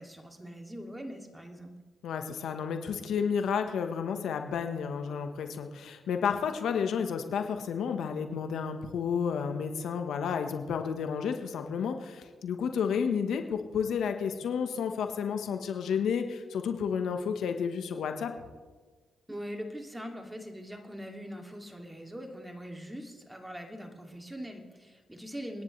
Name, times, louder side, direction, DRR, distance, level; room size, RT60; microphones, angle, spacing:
voice 1, 0.0-1.7 19.3-25.6, equal, 10° right, 3 dB, 2.5 m, -42 dB
voice 2, 2.0-18.3, left 7 dB, 75° left, 6 dB, 1.2 m, -31 dB
28.5 x 10.0 x 3.3 m, 1.4 s
supercardioid pair, 55°, 0 cm